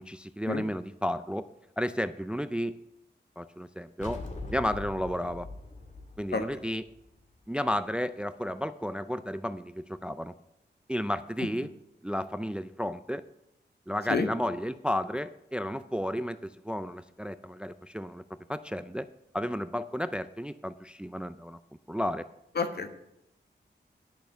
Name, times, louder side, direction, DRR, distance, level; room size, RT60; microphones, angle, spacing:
voice 1, 0.0-1.5 1.8-2.8 3.4-4.2 4.5-5.5 6.2-6.8 7.5-10.3 10.9-11.7 12.0-13.2 13.9-18.2 18.5-19.1 19.3-21.6 21.9-22.2, equal, 5° right, 13 dB, 0.3 m, -32 dB
sound 1, 4.0-7.4, left 2 dB, 40° left, 1.8 m, -42 dB
voice 2, 22.5-22.9, left 4 dB, 60° left, 7 dB, 1.2 m, -29 dB
10.5 x 6.7 x 5.6 m, 0.83 s
wide cardioid pair, 90°, 19 cm